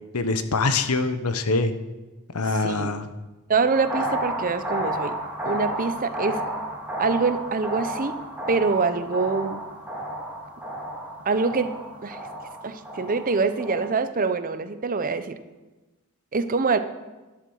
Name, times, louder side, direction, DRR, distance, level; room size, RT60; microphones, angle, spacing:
voice 1, 0.1-1.7 2.3-3.1, left 3 dB, 80° left, 10 dB, 1.0 m, -24 dB
voice 2, 3.5-5.1 5.4-6.4 7.0-8.2 8.5-9.6 11.3-11.7 12.0-12.2 12.6-15.4 16.3-16.8, right 4 dB, 40° right, 11 dB, 0.7 m, -24 dB
sound 1, 3.7-13.9, right 1 dB, 5° right, 2.7 m, -32 dB
11.5 x 11.0 x 6.4 m, 1.2 s
head